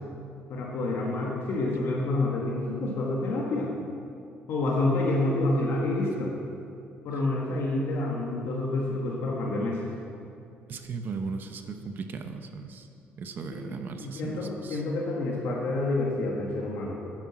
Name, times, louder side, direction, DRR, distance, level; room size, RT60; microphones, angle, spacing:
voice 1, 0.5-3.7 4.5-6.3 7.0-9.9 13.5-17.1, left 2 dB, 65° left, -3 dB, 1.6 m, -28 dB
voice 2, 10.7-12.9 13.2-14.8, right 4 dB, 45° right, 7 dB, 0.8 m, -37 dB
10.0 x 9.0 x 6.1 m, 2.6 s
cardioid pair, 130°, 4 cm